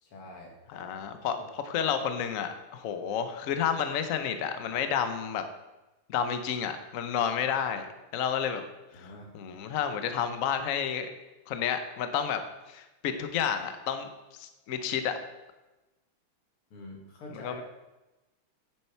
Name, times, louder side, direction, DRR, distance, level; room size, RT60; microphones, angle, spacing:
voice 1, 0.0-0.9 1.4-1.5 8.9-9.3 16.7-17.6, left 2 dB, 85° left, 0 dB, 2.7 m, -46 dB
voice 2, 0.7-1.4 1.7-5.4 6.1-7.9 8.1-8.6 8.9-9.1 9.3-11.1 11.5-12.4 12.7-15.1 17.4-17.6, left 8 dB, 70° left, 8 dB, 0.8 m, -30 dB
10.5 x 6.6 x 4.4 m, 1.1 s
omnidirectional pair, 2.4 m